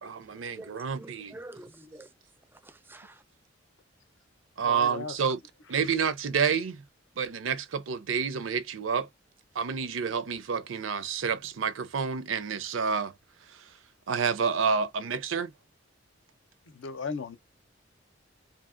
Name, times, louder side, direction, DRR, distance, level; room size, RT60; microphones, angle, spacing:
voice 1, 0.0-1.3 4.6-5.4 5.7-6.8 7.2-9.1 9.5-13.1 13.5-13.7 14.1-15.5, right 6 dB, 80° right, 0.5 m, -29 dB
voice 2, 0.5-2.1 2.6-3.2, right 2 dB, 10° right, 0.4 m, -47 dB
voice 3, 4.6-5.2 5.8-5.9 16.7-17.4, left 4 dB, 70° left, 0.6 m, -36 dB
2.7 x 2.7 x 2.4 m
head